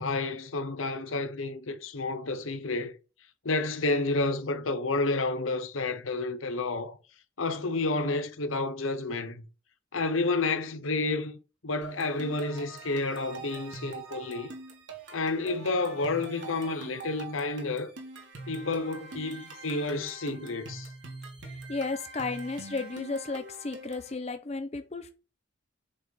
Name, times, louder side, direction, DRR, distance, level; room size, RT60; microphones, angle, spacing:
voice 1, 0.0-2.9 3.4-7.0 7.4-9.5 9.9-11.4 11.6-14.5 15.1-17.9 18.5-20.9, left 3 dB, 85° left, 0.9 m, -30 dB
sound 1, 11.8-24.1, right 3 dB, 65° right, 1.7 m, -44 dB
voice 2, 21.7-25.1, left 3 dB, 30° left, 0.6 m, -33 dB
7.6 x 4.1 x 4.1 m
head